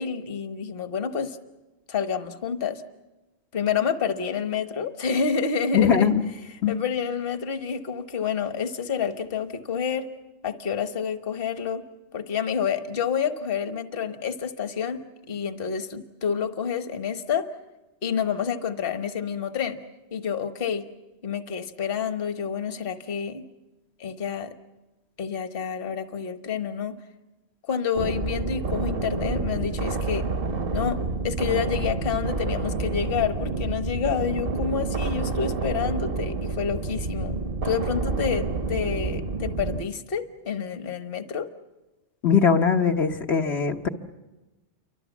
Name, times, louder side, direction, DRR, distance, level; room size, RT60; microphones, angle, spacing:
voice 1, 0.0-1.4 1.9-2.8 3.5-6.1 6.7-10.1 10.4-11.8 12.1-15.0 15.3-17.5 18.0-19.8 20.1-20.8 21.2-23.4 24.0-24.5 25.2-27.0 27.7-30.3 30.7-37.4 37.6-41.5, left 7 dB, 55° left, 9 dB, 1.4 m, -28 dB
voice 2, 5.7-6.2 6.6-6.7 42.2-43.9, left 7 dB, 75° left, 2 dB, 1.4 m, -21 dB
sound 1, 28.0-39.8, right 3 dB, 55° right, 1.2 m, -29 dB
29.0 x 24.5 x 7.2 m, 1.1 s
omnidirectional pair, 1.1 m